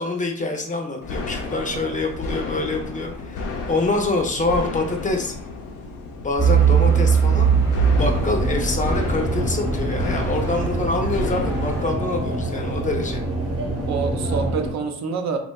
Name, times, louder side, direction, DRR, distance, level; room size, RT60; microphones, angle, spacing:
voice 1, 0.0-3.4 3.7-5.3 6.2-13.2, left 2 dB, 25° left, 2 dB, 0.4 m, -26 dB
sound 1, 1.0-14.5, left 3 dB, 90° left, 0.6 m, -33 dB
voice 2, 1.6-1.9 13.8-15.4, right 5 dB, 65° right, 4 dB, 0.5 m, -27 dB
Truck / Idling, 6.4-11.9, right 6 dB, 10° right, 0.7 m, -21 dB
sound 2, 7.9-14.7, right 1 dB, 45° right, 0.9 m, -27 dB
2.7 x 2.2 x 2.2 m, 0.64 s
cardioid pair, 90°, 30 cm